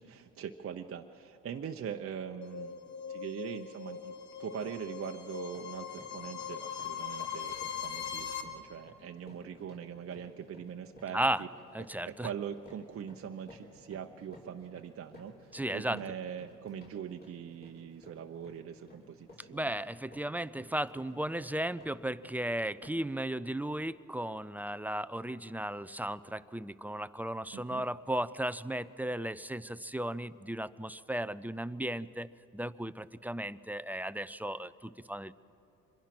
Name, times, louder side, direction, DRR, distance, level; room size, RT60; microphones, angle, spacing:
voice 1, 0.0-4.1 4.4-11.5 12.1-19.7 27.5-27.9, right 8 dB, 50° right, 4 dB, 0.8 m, -42 dB
sound 1, 2.4-8.4, left 8 dB, 65° left, 2.0 m, -40 dB
sound 2, 3.8-4.0 4.4-4.8 5.2-22.5 22.8-23.2, left 1 dB, 30° left, 6.4 m, -56 dB
voice 2, 11.7-12.3 15.5-16.0 19.5-32.3 32.5-35.3, right 1 dB, 5° right, 15 dB, 0.4 m, -35 dB
25.5 x 22.0 x 6.0 m, 2.6 s
cardioid pair, 90°, 30 cm